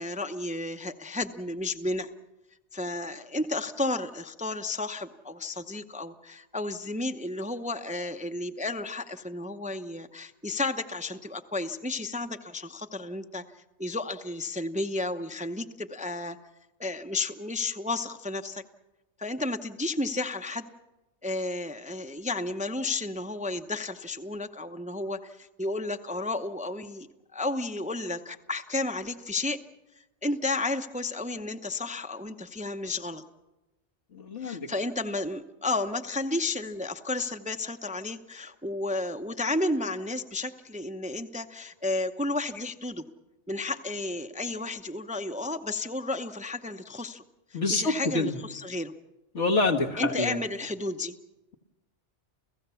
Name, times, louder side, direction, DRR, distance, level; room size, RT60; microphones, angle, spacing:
voice 1, 0.0-2.1 2.7-13.4 13.8-16.4 16.8-18.6 19.2-20.7 21.2-29.6 30.0-33.2 34.4-43.0 43.5-47.2 47.5-48.9 50.0-51.1, left 2 dB, 10° right, 7 dB, 0.6 m, -32 dB
voice 2, 34.1-34.7 47.5-48.4 49.3-50.4, left 3 dB, 80° left, 2 dB, 2.0 m, -27 dB
29.5 x 16.0 x 7.0 m, 1.0 s
omnidirectional pair, 1.2 m